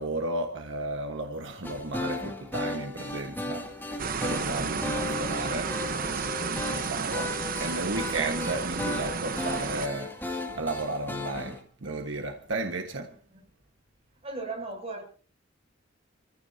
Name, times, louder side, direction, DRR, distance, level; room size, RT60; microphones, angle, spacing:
voice 1, 0.0-5.7 6.0-7.3 7.6-13.1, right 2 dB, 75° right, 1.4 m, -34 dB
sound 1, 1.6-11.6, left 2 dB, 10° left, 2.2 m, -36 dB
sound 2, 4.0-9.9, right 5 dB, 50° right, 1.0 m, -32 dB
voice 2, 14.2-15.0, right 3 dB, 35° right, 7.1 m, -39 dB
27.5 x 15.5 x 2.8 m
head